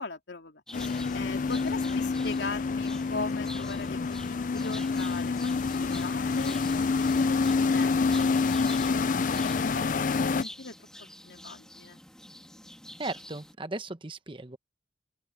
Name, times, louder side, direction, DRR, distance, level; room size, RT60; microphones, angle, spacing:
voice 1, 0.0-5.5 5.8-6.6 7.2-12.0, left 3 dB, 75° left, 3.0 m, -40 dB
sound 1, 0.7-10.4, left 4 dB, 45° left, 0.5 m, -27 dB
sound 2, 0.7-13.5, left 1 dB, 5° left, 1.9 m, -47 dB
voice 2, 13.0-14.6, right 2 dB, 30° right, 1.1 m, -36 dB
open air
head